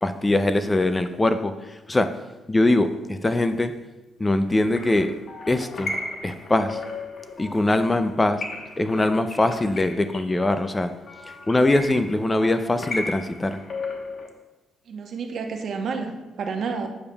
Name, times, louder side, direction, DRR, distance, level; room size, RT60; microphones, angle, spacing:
voice 1, 0.0-2.1 2.5-3.7 4.2-5.1 5.5-5.9 6.2-6.8 7.4-8.4 8.8-10.9 11.5-13.6, left 2 dB, 20° left, 9 dB, 0.4 m, -22 dB
sound 1, 4.5-14.3, left 2 dB, 50° left, 1.1 m, -36 dB
voice 2, 14.9-16.9, right 5 dB, 60° right, 4 dB, 0.9 m, -30 dB
8.7 x 6.9 x 2.3 m, 1.1 s
cardioid pair, 90°, 0 cm